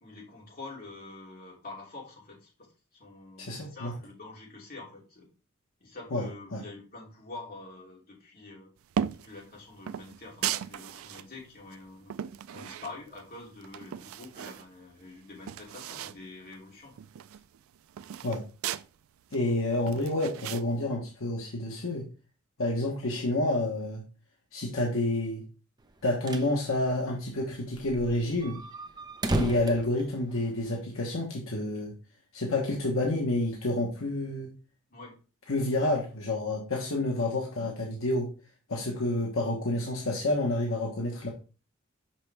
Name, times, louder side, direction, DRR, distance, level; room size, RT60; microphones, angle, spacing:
voice 1, 0.0-5.3 5.8-8.7 9.1-12.2 12.5-16.9 17.3-17.4 34.9-35.2, left 3 dB, 45° left, -2 dB, 2.7 m, -46 dB
voice 2, 3.4-3.9 6.1-6.3 6.5-6.6 18.2-18.4 19.3-22.0 22.6-24.0 24.5-25.4 26.0-28.6 29.3-31.9 32.3-34.5 35.5-38.3 38.7-41.3, left 2 dB, 75° left, 0 dB, 1.2 m, -29 dB
sound 1, 8.9-9.3 9.9-11.3 11.7-13.3 13.6-14.7 15.0-15.1 15.3-16.2 16.5-16.6 16.9-18.9 19.3-20.6, right 9 dB, 80° right, 0.3 m, -36 dB
sound 2, 25.9-26.5 26.9-27.0 27.2-27.3 27.7-30.7, right 1 dB, 20° right, 0.7 m, -34 dB
5.8 x 5.8 x 3.3 m, 0.35 s
head